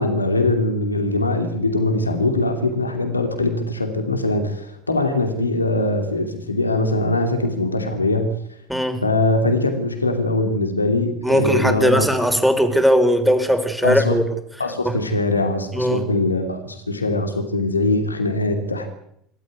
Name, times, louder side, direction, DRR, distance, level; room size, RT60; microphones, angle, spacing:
voice 1, 0.0-8.3 9.0-12.1 13.8-14.2 14.6-18.9, left 2 dB, 90° left, 6 dB, 2.7 m, -22 dB
voice 2, 8.7-9.0 11.2-14.2 14.8-15.0 15.7-16.0, equal, ahead, 7 dB, 4.5 m, -18 dB
26.5 x 13.5 x 9.6 m, 0.74 s
figure-of-eight pair, 70°, 0 cm